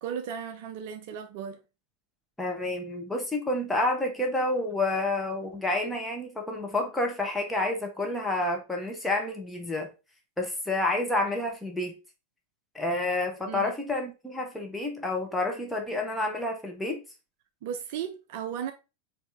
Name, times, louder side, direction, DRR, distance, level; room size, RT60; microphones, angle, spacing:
voice 1, 0.0-1.6 13.5-13.7 17.6-18.7, right 8 dB, 50° right, 0.4 m, -35 dB
voice 2, 2.4-9.9 10.4-11.9 12.7-17.0, left 2 dB, 5° left, 1.0 m, -29 dB
4.1 x 2.8 x 3.4 m
figure-of-eight pair, 90°, 0 cm